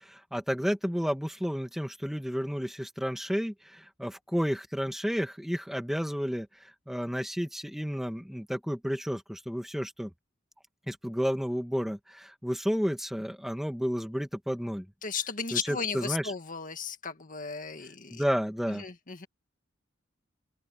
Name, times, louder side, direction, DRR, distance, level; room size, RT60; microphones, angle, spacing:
voice 1, 0.0-10.1 10.9-14.9 15.5-16.3 18.1-18.8, equal, ahead, 2.4 m, -31 dB
voice 2, 15.0-18.2 18.7-19.3, left 6 dB, 45° left, 1.8 m, -35 dB
open air
head